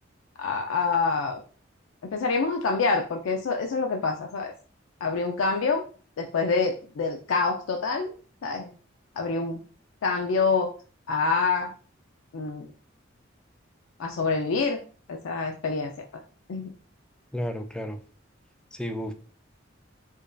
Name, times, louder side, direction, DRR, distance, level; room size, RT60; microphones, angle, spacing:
voice 1, 0.4-1.4 2.0-4.5 5.0-5.9 6.2-8.1 8.4-8.7 9.2-9.6 10.0-10.7 11.1-11.7 12.3-12.7 14.0-14.8 15.1-15.9 16.5-16.7, left 4 dB, 90° left, 3 dB, 0.4 m, -26 dB
voice 2, 17.3-18.0 18.7-19.1, equal, 5° left, 7 dB, 0.3 m, -32 dB
5.0 x 2.5 x 2.2 m, 0.40 s
head